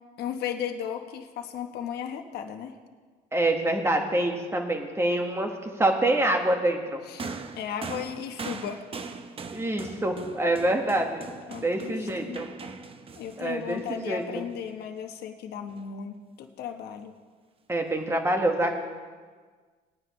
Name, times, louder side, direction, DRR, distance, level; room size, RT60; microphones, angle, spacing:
voice 1, 0.2-2.7 7.0-7.3 7.6-8.8 11.5-12.4 13.1-17.1, left 8 dB, 70° left, 5 dB, 1.1 m, -35 dB
voice 2, 3.3-7.0 9.5-11.2 11.6-12.5 13.4-14.2 17.7-18.7, right 1 dB, 15° right, 3 dB, 1.5 m, -26 dB
sound 1, 7.2-14.7 15.7-15.8, right 4 dB, 35° right, 0.8 m, -41 dB
19.0 x 9.6 x 3.2 m, 1.5 s
cardioid pair, 110°, 17 cm